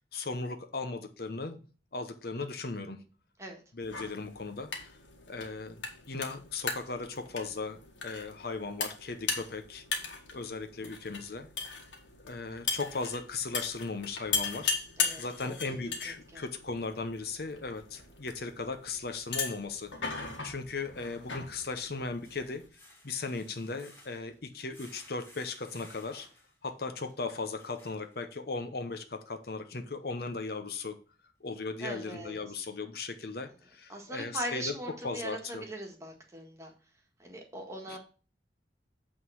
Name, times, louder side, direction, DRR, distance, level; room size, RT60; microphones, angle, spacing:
voice 1, 0.1-1.6 1.9-3.0 3.7-5.0 5.3-9.8 10.3-11.5 12.2-14.7 15.2-22.6 23.0-26.3 26.6-31.0 31.4-34.7 35.0-35.6 37.9-38.0, left 3 dB, 55° left, 7 dB, 0.8 m, -37 dB
sound 1, 3.8-22.7, left 5 dB, 90° left, 1.7 m, -38 dB
voice 2, 15.0-16.4 31.8-32.4 33.9-36.7 37.2-38.0, right 1 dB, 15° right, 1 dB, 1.6 m, -41 dB
sound 2, 21.1-28.6 29.1-29.2 29.7-29.8, left 1 dB, 15° left, 2.6 m, -58 dB
8.6 x 3.8 x 6.2 m, 0.37 s
head